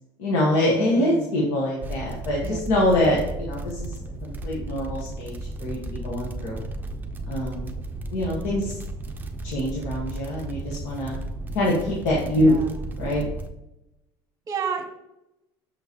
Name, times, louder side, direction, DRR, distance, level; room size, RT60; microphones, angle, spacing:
voice 1, 0.2-3.9 4.2-5.3 5.6-6.6 7.3-7.7 8.1-8.8 9.4-11.2 11.5-12.6 13.0-13.2, left 1 dB, 80° left, -5 dB, 1.8 m, -24 dB
voice 2, 0.8-1.3 2.4-2.6 12.3-12.7 14.5-14.8, right 7 dB, 35° right, 6 dB, 1.1 m, -31 dB
sound 1, 1.8-13.5, right 2 dB, 20° right, 0.7 m, -34 dB
6.3 x 6.0 x 3.1 m, 0.88 s
cardioid pair, 120°, 10 cm